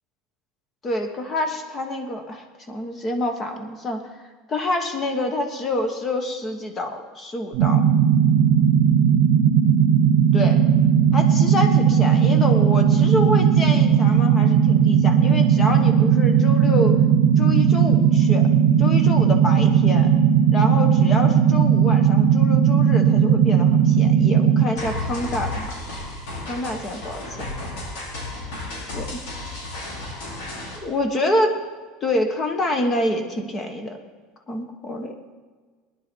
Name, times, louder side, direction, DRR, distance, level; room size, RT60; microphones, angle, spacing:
voice 1, 0.8-4.1 4.5-7.8 10.3-10.6 11.1-17.0 17.4-18.5 18.8-20.1 20.5-25.7 26.5-27.4 28.9-29.2 30.8-31.6 32.0-34.0 34.5-35.1, left 1 dB, 20° left, 6 dB, 1.3 m, -27 dB
sound 1, 7.5-24.7, right 8 dB, 65° right, 0.9 m, -17 dB
sound 2, 24.8-30.8, left 1 dB, 70° left, 4.8 m, -33 dB
19.0 x 10.5 x 4.6 m, 1.5 s
cardioid pair, 175°, 0 cm